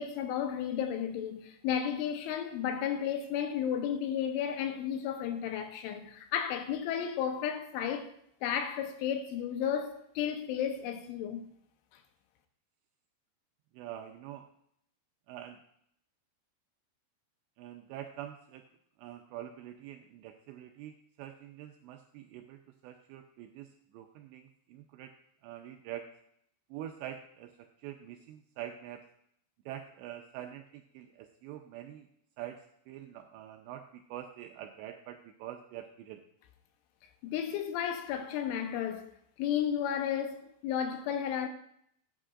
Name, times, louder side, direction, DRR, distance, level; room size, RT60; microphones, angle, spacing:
voice 1, 0.0-8.1 8.4-11.5 37.2-39.1 39.4-41.5, left 9 dB, 85° left, 3.3 m, -33 dB
voice 2, 13.7-14.5 15.3-15.6 17.6-18.6 19.0-23.7 23.9-25.1 25.4-26.1 26.7-29.0 29.7-32.1 32.4-36.2, right 11 dB, 85° right, 2.5 m, -45 dB
14.0 x 8.7 x 2.5 m
omnidirectional pair, 5.6 m